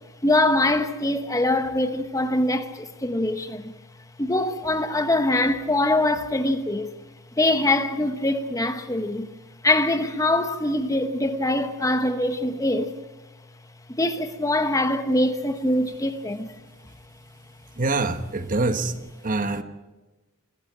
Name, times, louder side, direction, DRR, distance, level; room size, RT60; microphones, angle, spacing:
voice 1, 0.2-3.7 4.2-6.9 7.4-9.3 9.6-12.9 13.9-16.5, left 1 dB, 15° left, 1.1 m, -23 dB
voice 2, 17.8-18.9 19.2-19.6, right 3 dB, 40° right, 1.2 m, -24 dB
25.5 x 15.0 x 8.8 m
head